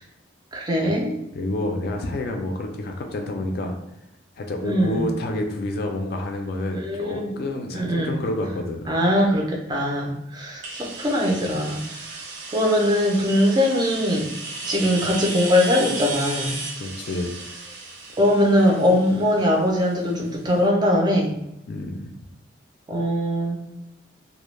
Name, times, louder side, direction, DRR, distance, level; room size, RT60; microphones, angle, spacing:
voice 1, 0.5-1.1 4.6-5.2 6.7-7.4 7.7-8.2 8.9-11.8 12.5-14.3 14.6-16.6 18.2-21.3 22.9-23.7, left 1 dB, 20° right, 0 dB, 0.4 m, -21 dB
voice 2, 1.3-3.7 4.4-9.0 16.8-17.4 21.7-22.1, left 1 dB, 55° left, 3 dB, 0.3 m, -29 dB
sound 1, 10.6-20.3, right 3 dB, 75° right, 0.5 m, -35 dB
2.2 x 2.0 x 3.0 m, 0.85 s
head